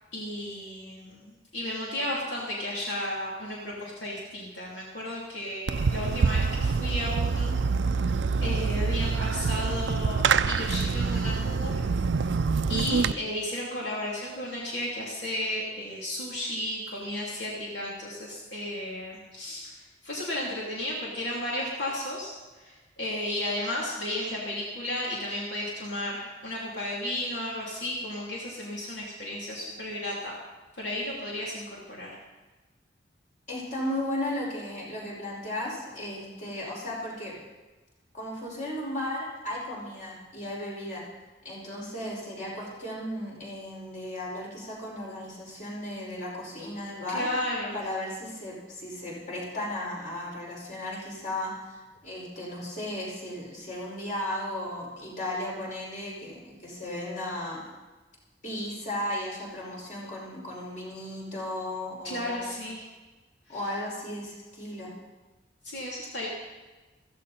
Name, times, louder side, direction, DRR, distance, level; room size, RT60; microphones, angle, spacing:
voice 1, 0.1-7.5 7.9-8.1 8.4-11.9 12.1-12.3 12.7-19.8 20.0-30.4 30.7-32.2 47.1-47.8 62.0-62.9 63.5-63.6 65.6-66.3, left 1 dB, 80° left, -5 dB, 3.1 m, -34 dB
Fireworks, 5.7-13.1, right 5 dB, 85° right, 0.5 m, -26 dB
voice 2, 33.5-37.4 38.1-41.0 41.4-47.3 47.7-57.6 58.4-62.6 63.5-64.9, left 1 dB, 45° left, -4 dB, 5.3 m, -35 dB
15.5 x 15.0 x 4.3 m, 1.2 s
head